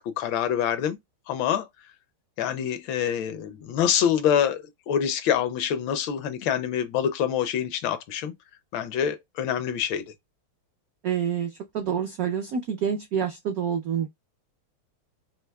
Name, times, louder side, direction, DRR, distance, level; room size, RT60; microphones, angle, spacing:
voice 1, 0.2-1.0 1.3-1.7 2.4-8.3 8.7-10.0, left 9 dB, 75° left, 1.3 m, -26 dB
voice 2, 11.0-14.1, right 8 dB, 80° right, 0.8 m, -27 dB
5.6 x 2.8 x 2.2 m
omnidirectional pair, 2.3 m